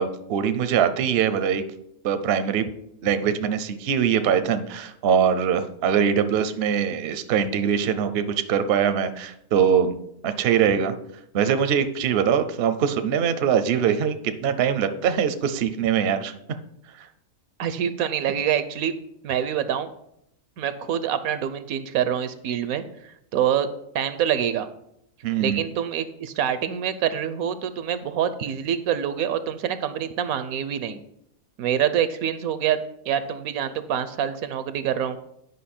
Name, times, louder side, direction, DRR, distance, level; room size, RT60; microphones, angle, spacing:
voice 1, 0.0-1.6 2.0-2.7 3.0-10.0 10.2-10.9 11.3-16.3 17.0-17.1 25.2-25.6, right 8 dB, 55° right, 11 dB, 0.7 m, -22 dB
voice 2, 17.6-18.9 19.2-19.9 20.6-22.8 23.3-23.7 23.9-24.7 25.4-31.0 31.6-32.8 33.1-35.2, right 9 dB, 80° right, 12 dB, 1.0 m, -25 dB
9.4 x 5.3 x 4.3 m, 0.76 s
omnidirectional pair, 1.5 m